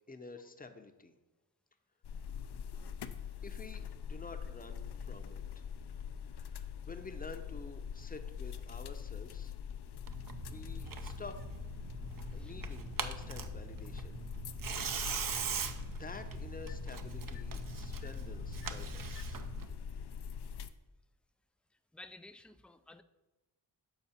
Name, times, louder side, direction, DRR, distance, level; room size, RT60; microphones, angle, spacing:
voice 1, 0.1-1.2 3.4-5.6 6.3-9.5 10.5-11.4 12.3-14.2 16.0-19.5, left 3 dB, 20° left, 7 dB, 0.7 m, -50 dB
sound 1, 2.0-20.7, left 7 dB, 60° left, 0.5 m, -43 dB
Tearing, 10.1-19.7, right 6 dB, 45° right, 0.6 m, -41 dB
voice 2, 21.9-23.0, left 2 dB, 5° left, 11 dB, 0.3 m, -53 dB
7.0 x 4.4 x 4.3 m, 1.1 s
cardioid pair, 40°, 45 cm